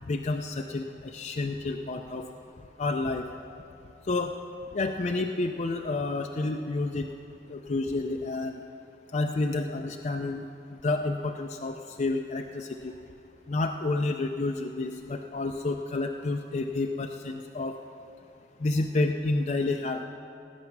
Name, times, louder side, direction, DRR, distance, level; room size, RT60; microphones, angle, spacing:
voice 1, 0.1-2.2 2.8-3.2 4.1-4.3 4.7-7.0 7.5-8.6 9.1-10.4 10.8-12.9 13.5-17.8 18.6-20.0, left 2 dB, 40° left, 4 dB, 0.5 m, -29 dB
18.5 x 9.0 x 5.9 m, 2.8 s
head